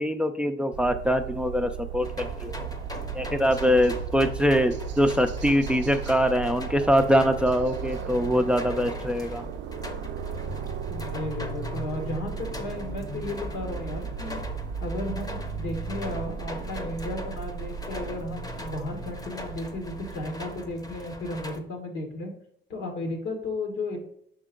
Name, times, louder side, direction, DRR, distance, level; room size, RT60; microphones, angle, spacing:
voice 1, 0.0-2.6 3.1-9.4, equal, 5° right, 8 dB, 0.4 m, -23 dB
sound 1, 0.7-20.3, right 9 dB, 65° right, 0.4 m, -37 dB
sound 2, 2.0-21.6, left 1 dB, 20° left, 0.8 m, -39 dB
voice 2, 10.9-14.4 14.8-22.3 22.7-24.0, left 2 dB, 85° left, 3 dB, 1.7 m, -34 dB
5.8 x 4.5 x 3.7 m, 0.69 s
cardioid pair, 90°, 20 cm